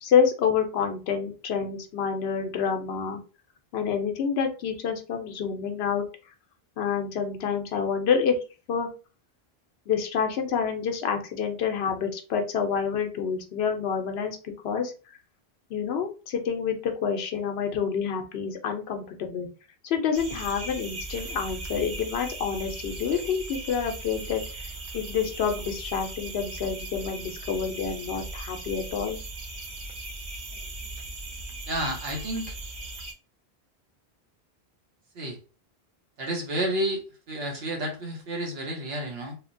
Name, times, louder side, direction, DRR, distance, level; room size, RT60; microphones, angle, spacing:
voice 1, 0.0-3.2 3.7-6.1 6.8-8.4 8.7-8.9 9.9-14.4 14.6-14.9 15.7-19.5 19.8-29.2, left 7 dB, 75° left, 4 dB, 0.8 m, -28 dB
sound 1, 20.1-33.1, right 2 dB, 50° right, 0.6 m, -38 dB
voice 2, 31.7-32.6 35.1-35.4 36.2-39.4, right 1 dB, 75° right, 1 dB, 1.1 m, -30 dB
3.1 x 2.1 x 2.5 m, 0.34 s
omnidirectional pair, 1.1 m